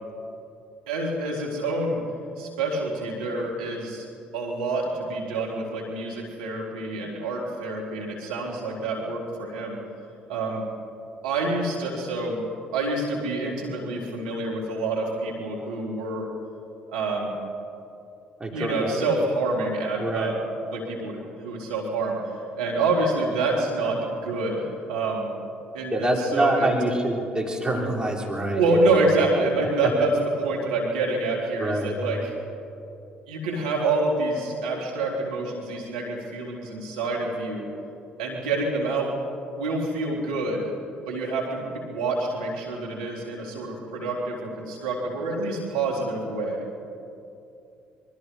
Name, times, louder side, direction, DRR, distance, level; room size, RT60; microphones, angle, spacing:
voice 1, 0.9-2.0 2.4-9.8 10.3-10.6 11.2-12.4 12.7-16.3 16.9-17.3 18.5-20.3 20.7-22.2 22.6-25.3 25.7-26.7 28.5-30.1 30.4-32.3 33.3-37.7 38.2-39.1 39.5-40.6 41.1-46.6, right 2 dB, 80° right, -2 dB, 3.5 m, -27 dB
voice 2, 18.4-19.0 20.0-20.4 25.9-29.0 31.6-31.9, right 1 dB, 20° right, -1 dB, 4.7 m, -25 dB
25.5 x 24.0 x 4.7 m, 2.7 s
hypercardioid pair, 50°, 4 cm